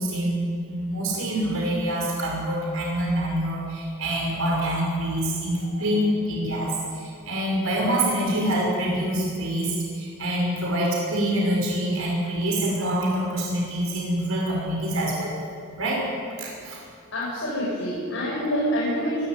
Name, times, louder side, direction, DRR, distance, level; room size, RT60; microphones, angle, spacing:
voice 1, 0.0-15.3 15.8-16.0 16.4-16.8, right 1 dB, 85° right, -2 dB, 6.0 m, -26 dB
voice 2, 17.1-19.3, equal, 60° left, -8 dB, 7.7 m, -26 dB
24.5 x 13.5 x 9.5 m, 2.3 s
head